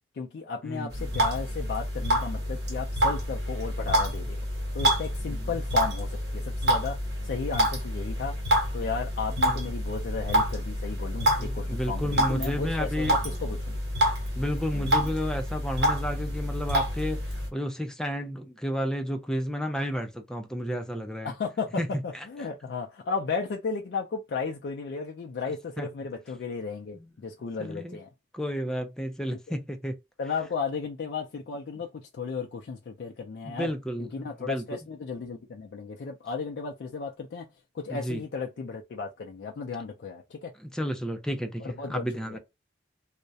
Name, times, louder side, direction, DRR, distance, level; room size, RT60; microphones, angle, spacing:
voice 1, 0.1-4.4 4.7-13.8 14.7-14.9 21.2-28.1 29.5-29.6 30.2-33.7 34.0-37.5 37.7-40.5 41.6-42.4, left 5 dB, 75° left, 0.4 m, -34 dB
sound 1, 0.9-17.5, equal, 80° right, 1.0 m, -28 dB
voice 2, 11.4-13.2 14.4-21.3 21.8-21.9 25.8-25.9 26.9-27.1 27.6-28.0 28.3-29.9 33.4-34.6 37.9-38.2 40.6-42.4, equal, 5° left, 0.3 m, -32 dB
2.3 x 2.0 x 2.6 m
head